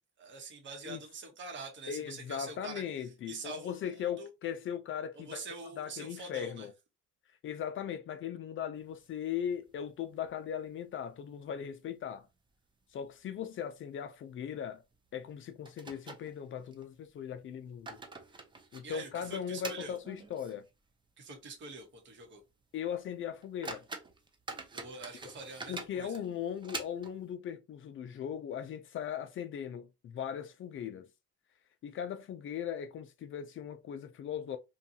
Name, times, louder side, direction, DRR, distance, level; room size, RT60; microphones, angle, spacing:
voice 1, 0.2-4.3 5.1-6.7 18.8-20.0 21.2-22.4 24.7-26.2, right 3 dB, 40° right, 1.0 m, -45 dB
voice 2, 1.9-5.4 5.8-6.7 7.4-12.3 12.9-14.8 15.1-17.9 18.7-20.6 22.7-23.8 25.7-31.1 31.8-34.6, left 9 dB, 40° left, 0.4 m, -38 dB
sound 1, 8.9-9.9 10.2-10.3 10.7-10.8 11.4-11.9 12.2-12.3 12.9-13.1 13.4-13.6 14.9-15.0 15.7-16.9 17.5-20.7 21.0-21.1 21.7-21.8 22.2-22.4 22.9-23.0 23.4-27.3, right 3 dB, 15° right, 0.4 m, -46 dB
2.6 x 2.3 x 2.7 m
cardioid pair, 125°, 31 cm